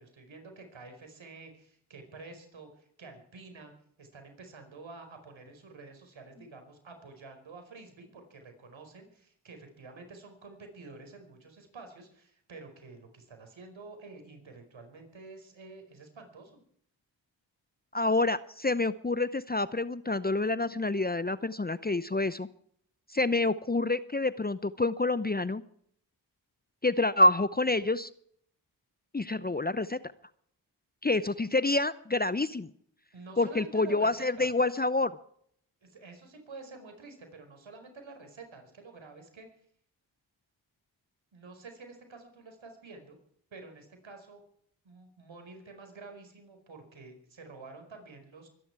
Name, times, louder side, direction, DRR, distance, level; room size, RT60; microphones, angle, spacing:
voice 1, 0.0-3.7 4.0-16.6 33.1-34.5 35.8-39.5 41.3-43.2 43.5-44.4 44.8-48.5, right 3 dB, 65° right, 6 dB, 5.0 m, -49 dB
voice 2, 17.9-22.5 23.1-25.6 26.8-28.1 29.1-30.0 31.0-32.7 33.4-35.1, left 2 dB, 20° left, 16 dB, 0.8 m, -27 dB
24.0 x 11.0 x 4.7 m, 0.65 s
supercardioid pair, 40°, 49 cm